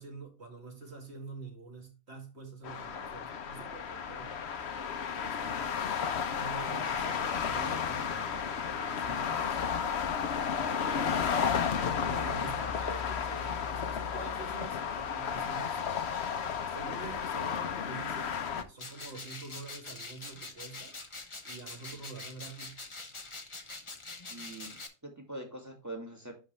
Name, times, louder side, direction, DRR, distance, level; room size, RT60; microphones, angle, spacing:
voice 1, 0.0-4.4 5.1-5.9 6.2-10.0 10.4-11.4 12.0-15.8 16.7-20.9 21.4-22.9, right 4 dB, 60° right, 2.4 m, -47 dB
sound 1, 2.6-18.6, left 7 dB, 60° left, 1.1 m, -33 dB
sound 2, 18.8-24.9, left 3 dB, 25° left, 1.0 m, -45 dB
voice 2, 24.3-26.3, right 1 dB, 15° right, 2.0 m, -43 dB
10.5 x 3.9 x 3.2 m
omnidirectional pair, 1.3 m